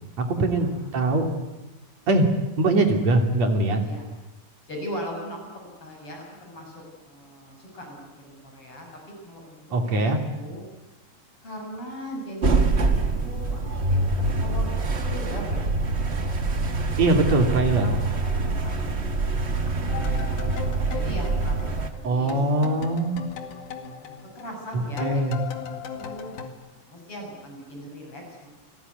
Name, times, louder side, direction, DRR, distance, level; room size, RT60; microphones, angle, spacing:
voice 1, 0.2-1.3 2.1-2.3 2.6-3.8 9.7-10.2 17.0-17.9 22.0-23.2 25.0-25.4, right 2 dB, 55° right, 5 dB, 4.1 m, -22 dB
voice 2, 4.7-10.6 11.4-14.7 15.0-16.4 16.8-19.3 19.9-22.9 24.0-25.3 25.6-26.3 26.7-28.5, equal, 40° left, 1 dB, 7.4 m, -40 dB
sound 1, 12.4-21.9, right 3 dB, 35° right, 1.0 m, -25 dB
Wood echo, 19.9-22.0 22.3-26.5, left 6 dB, 70° left, 3.5 m, -37 dB
29.0 x 19.5 x 9.5 m, 1.1 s
omnidirectional pair, 3.7 m